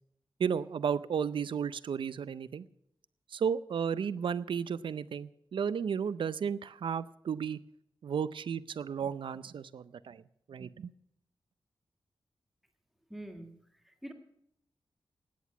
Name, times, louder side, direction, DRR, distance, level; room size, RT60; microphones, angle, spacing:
voice 1, 0.4-2.6 3.3-7.6 8.0-10.2 10.5-10.9, right 7 dB, 75° right, 16 dB, 0.5 m, -33 dB
voice 2, 13.1-13.5 13.8-14.1, right 1 dB, ahead, 5 dB, 1.8 m, -44 dB
16.5 x 9.5 x 5.9 m, 0.74 s
wide cardioid pair, 150°, 8 cm